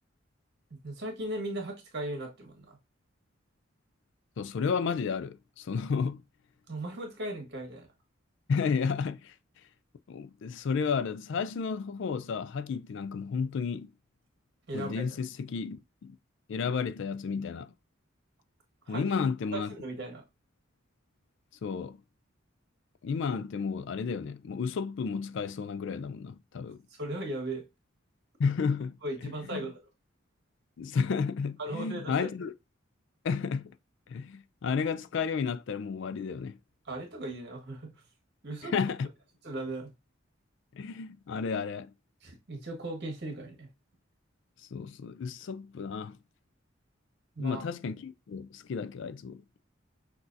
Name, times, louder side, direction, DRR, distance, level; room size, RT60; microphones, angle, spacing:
voice 1, 0.8-2.8 6.7-7.9 14.7-15.0 18.9-19.0 19.5-20.2 26.9-27.6 29.0-29.8 31.6-32.3 36.8-37.9 38.4-38.7 39.4-39.9 42.2-43.7 47.3-47.6, right 1 dB, 55° right, 1.6 m, -37 dB
voice 2, 4.4-6.2 8.5-9.3 10.1-13.9 14.7-16.2 16.5-17.7 18.9-19.7 21.6-22.0 23.0-26.8 28.4-29.0 29.2-29.7 30.8-32.5 33.2-33.7 34.1-36.6 38.6-39.1 40.7-41.9 44.7-46.2 47.4-49.4, left 5 dB, 60° left, 0.4 m, -32 dB
6.0 x 2.7 x 2.6 m
head